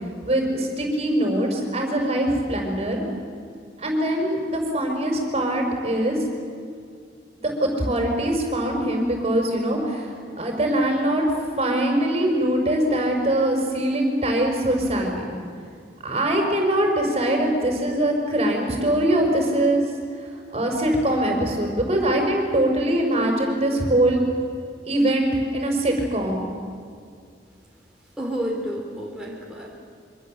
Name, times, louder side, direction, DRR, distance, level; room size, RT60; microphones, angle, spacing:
voice 1, 0.2-3.0 3.8-6.2 7.4-11.2 11.6-15.4 16.0-19.8 20.2-24.2 24.9-26.5, right 1 dB, 35° right, 2 dB, 5.2 m, -22 dB
voice 2, 28.2-29.7, equal, 5° right, -3 dB, 3.6 m, -30 dB
27.0 x 24.5 x 7.8 m, 2.3 s
head